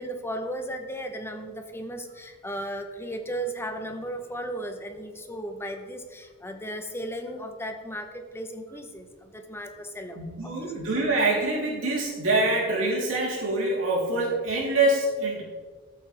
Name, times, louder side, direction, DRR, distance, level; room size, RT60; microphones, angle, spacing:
voice 1, 0.0-10.7, right 1 dB, 10° left, 6 dB, 0.8 m, -35 dB
voice 2, 10.1-15.4, right 2 dB, 70° right, -4 dB, 3.4 m, -25 dB
13.0 x 7.8 x 3.4 m, 1.5 s
head